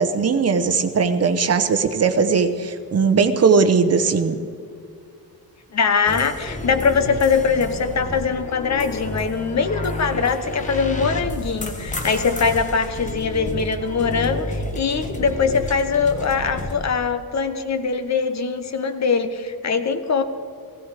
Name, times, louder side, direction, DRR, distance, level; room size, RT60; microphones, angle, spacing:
voice 1, 0.0-4.4, right 5 dB, 45° right, 10 dB, 0.9 m, -19 dB
voice 2, 5.7-20.2, left 5 dB, 50° left, 9 dB, 1.0 m, -22 dB
sound 1, 6.1-16.7, left 1 dB, 20° left, 1.2 m, -30 dB
16.5 x 16.0 x 4.9 m, 2.2 s
wide cardioid pair, 155°, 37 cm